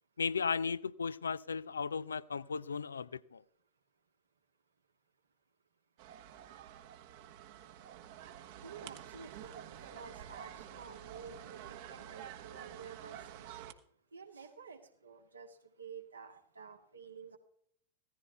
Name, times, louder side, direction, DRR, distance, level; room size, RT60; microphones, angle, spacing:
voice 1, 0.2-3.4, left 5 dB, 70° left, 0.5 m, -36 dB
sound 1, 6.0-13.7, right 10 dB, 50° right, 1.3 m, -49 dB
voice 2, 8.6-13.5 14.1-17.4, right 6 dB, 75° right, 2.0 m, -51 dB
16.0 x 14.5 x 3.5 m
figure-of-eight pair, 90°, 0 cm